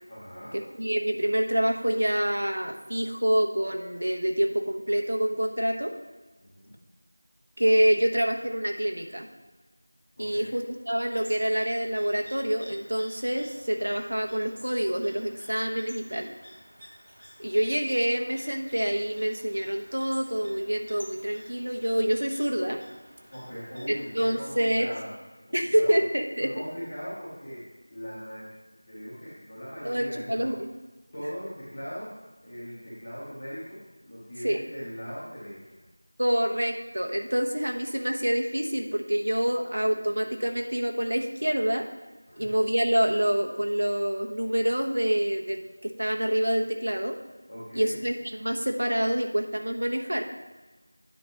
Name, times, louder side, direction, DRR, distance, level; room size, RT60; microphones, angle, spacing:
voice 1, 0.1-0.5 6.5-6.8 10.2-10.5 23.3-25.1 25.5-26.0 26.4-28.5 28.8-30.5 31.1-32.1 32.4-35.8 42.3-42.5 47.5-48.0, equal, 15° left, -13 dB, 1.5 m, -40 dB
voice 2, 0.8-5.9 7.6-9.3 10.2-16.3 17.4-22.8 23.9-24.9 25.5-26.5 29.8-30.7 34.4-34.6 36.2-41.9 42.4-47.2 47.7-50.3, equal, 85° right, 3 dB, 1.1 m, -26 dB
sound 1, 11.1-24.7, equal, 65° right, 2.8 m, -51 dB
9.9 x 4.2 x 4.7 m, 1.2 s
figure-of-eight pair, 180°, 0 cm